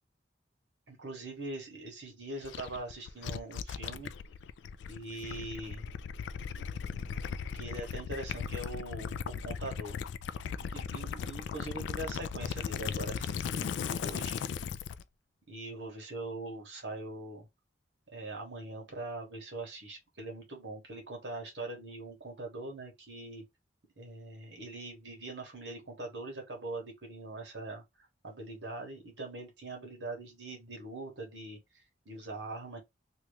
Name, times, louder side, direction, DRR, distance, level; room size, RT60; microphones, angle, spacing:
voice 1, 0.9-4.1 4.9-5.8 6.5-6.6 7.5-10.0 10.7-14.4 15.5-17.5 18.1-23.4 24.0-32.8, right 2 dB, 70° right, 1.3 m, -42 dB
Gurgling / Liquid, 2.4-15.0, left 7 dB, 70° left, 0.3 m, -37 dB
2.9 x 2.4 x 3.2 m
head